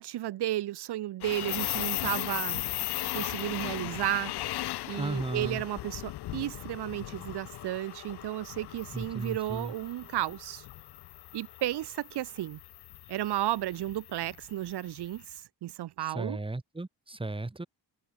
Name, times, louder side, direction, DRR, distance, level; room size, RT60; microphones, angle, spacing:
voice 1, 0.0-2.6 3.1-4.3 4.9-10.7 11.3-12.6 13.1-16.4, right 14 dB, 80° right, 0.9 m, -33 dB
sound 1, 1.2-15.3, left 15 dB, 75° left, 0.6 m, -38 dB
voice 2, 5.0-5.6 8.9-9.7 16.1-17.7, right 2 dB, 15° right, 2.3 m, -35 dB
cardioid pair, 110°, 39 cm